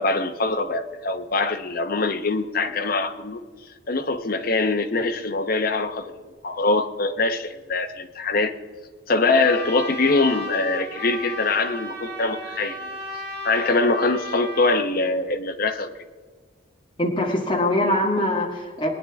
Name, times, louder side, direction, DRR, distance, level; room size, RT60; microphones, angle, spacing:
voice 1, 0.0-3.4 3.9-6.1 6.4-8.5 9.1-13.0 13.4-15.9, left 3 dB, 50° left, 7 dB, 0.9 m, -23 dB
Trumpet, 9.4-14.8, left 1 dB, 60° right, 2.1 m, -35 dB
voice 2, 17.0-18.9, left 1 dB, 25° left, -1 dB, 1.9 m, -23 dB
21.0 x 9.8 x 3.5 m, 1.5 s
head